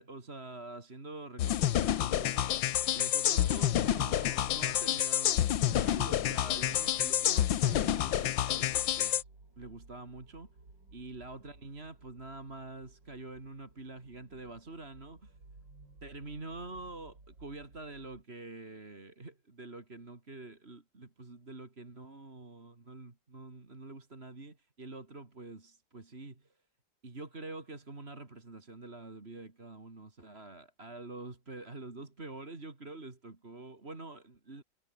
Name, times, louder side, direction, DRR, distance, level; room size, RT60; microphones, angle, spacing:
voice 1, 0.0-2.6 2.9-9.3 9.6-10.6 10.9-15.4 16.0-26.6 27.0-34.6, right 2 dB, 30° right, 3.2 m, -46 dB
sound 1, 1.4-9.2, left 11 dB, 80° left, 1.7 m, -28 dB
sound 2, 3.9-18.2, right 3 dB, 70° right, 6.3 m, -58 dB
omnidirectional pair, 2.1 m